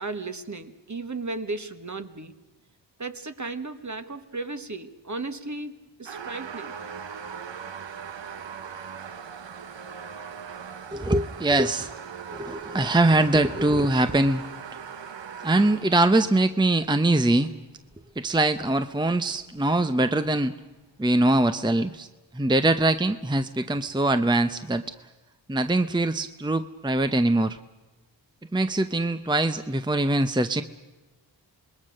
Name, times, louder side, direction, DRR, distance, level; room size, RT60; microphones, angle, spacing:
voice 1, 0.0-2.3 3.0-6.8, right 3 dB, 40° right, 8 dB, 1.7 m, -35 dB
sound 1, 6.0-16.2 16.8-16.9 18.6-18.7 19.0-19.1 19.5-19.6 20.2-20.3, right 6 dB, 70° right, 1.0 m, -39 dB
voice 2, 10.9-11.9 12.3-14.4 15.4-17.5 18.2-20.5 21.0-22.1 22.3-24.8 25.5-27.6 28.5-30.6, right 2 dB, 10° right, 10 dB, 0.8 m, -22 dB
26.5 x 20.5 x 6.5 m, 1.2 s
cardioid pair, 50°, 45 cm